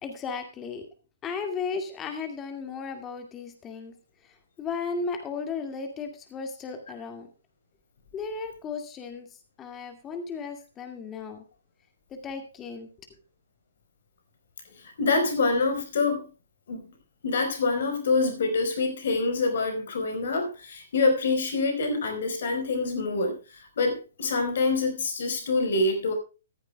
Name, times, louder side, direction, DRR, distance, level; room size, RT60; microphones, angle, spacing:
voice 1, 0.0-0.9 1.2-3.9 4.2-7.3 8.1-9.3 9.6-11.4 12.1-12.9, left 5 dB, 20° left, 5 dB, 2.2 m, -35 dB
voice 2, 15.0-16.3 16.7-16.8 17.2-23.4 23.8-26.1, left 3 dB, 60° left, 6 dB, 4.6 m, -26 dB
15.0 x 14.5 x 2.3 m, 0.32 s
figure-of-eight pair, 125°, 0 cm